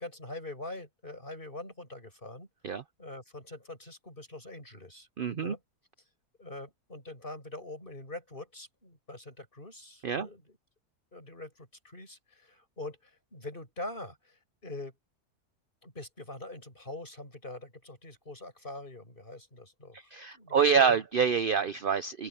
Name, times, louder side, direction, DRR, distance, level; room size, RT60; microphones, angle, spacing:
voice 1, 0.0-2.5 3.0-5.1 5.3-5.6 6.4-10.6 11.1-14.9 15.8-20.8, left 2 dB, 30° left, 8.2 m, -44 dB
voice 2, 5.2-5.5 10.0-10.3 20.1-22.3, right 6 dB, 55° right, 0.6 m, -26 dB
open air
omnidirectional pair, 1.7 m